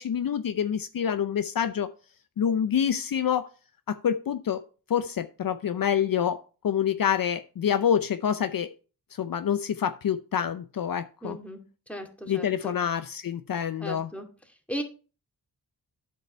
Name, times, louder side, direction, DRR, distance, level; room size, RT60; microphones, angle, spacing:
voice 1, 0.0-1.9 2.4-3.5 3.9-4.6 4.9-6.4 6.6-8.7 9.2-11.4 12.3-14.1, left 8 dB, 60° left, 10 dB, 0.7 m, -27 dB
voice 2, 11.2-12.8 13.8-14.3 14.7-14.8, equal, 5° left, 3 dB, 2.2 m, -37 dB
9.0 x 5.4 x 4.5 m, 0.36 s
cardioid pair, 55°, 40 cm